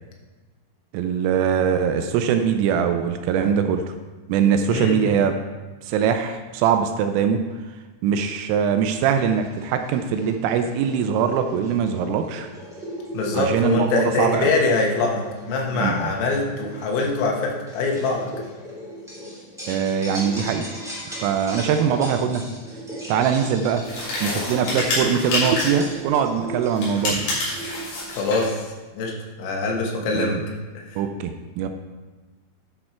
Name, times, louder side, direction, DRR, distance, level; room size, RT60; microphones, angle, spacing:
voice 1, 0.9-3.9 4.3-5.4 5.9-7.4 8.0-12.5 13.3-14.5 15.7-16.1 19.7-20.7 21.1-22.5 23.1-23.9 24.2-27.3 30.1-30.4 31.0-31.7, right 7 dB, 85° right, 7 dB, 3.1 m, -22 dB
sound 1, 9.1-28.6, right 1 dB, ahead, 1.2 m, -38 dB
voice 2, 13.1-18.3 28.1-28.7 28.9-30.4 30.8-31.0, left 3 dB, 80° left, 0 dB, 4.0 m, -24 dB
sound 2, 23.8-25.9 26.7-28.5, left 2 dB, 55° left, 4.7 m, -27 dB
10.5 x 6.5 x 4.4 m, 1.2 s
omnidirectional pair, 6.0 m